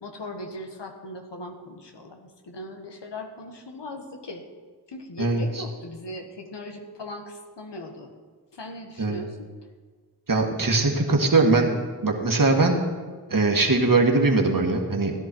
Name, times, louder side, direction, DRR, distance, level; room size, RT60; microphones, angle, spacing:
voice 1, 0.0-4.4 4.9-8.1 8.5-9.4, left 1 dB, 90° left, 4 dB, 1.6 m, -39 dB
voice 2, 5.2-5.6 9.0-9.2 10.3-11.7 12.0-12.8 13.3-15.1, right 3 dB, 50° right, 2 dB, 2.1 m, -21 dB
16.5 x 10.5 x 4.6 m, 1.5 s
cardioid pair, 45°, 41 cm